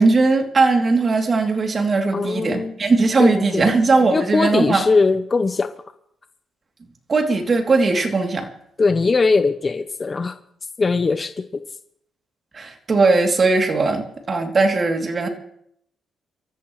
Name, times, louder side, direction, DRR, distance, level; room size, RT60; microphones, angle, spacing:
voice 1, 0.0-4.8 7.1-8.5 12.5-15.3, right 3 dB, 35° right, 2 dB, 3.0 m, -19 dB
voice 2, 2.1-2.8 3.2-3.7 4.1-5.7 8.8-10.4 10.8-11.6, left 4 dB, 30° left, 9 dB, 0.8 m, -20 dB
25.0 x 14.0 x 3.2 m, 0.72 s
cardioid pair, 90°, 0 cm